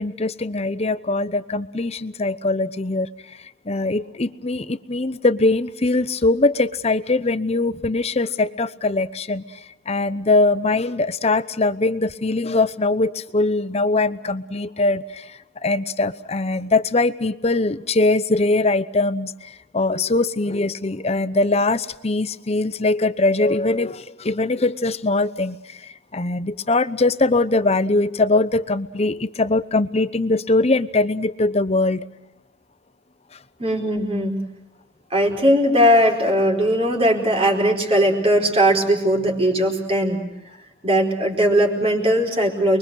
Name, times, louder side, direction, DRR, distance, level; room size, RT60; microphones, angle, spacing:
voice 1, 0.0-3.4 3.7-9.6 9.9-32.1 35.3-35.4, left 2 dB, 35° left, 14 dB, 0.8 m, -22 dB
voice 2, 33.6-34.4 35.1-40.2 40.8-42.8, equal, 35° right, 2 dB, 4.7 m, -19 dB
29.5 x 23.0 x 6.4 m, 0.93 s
head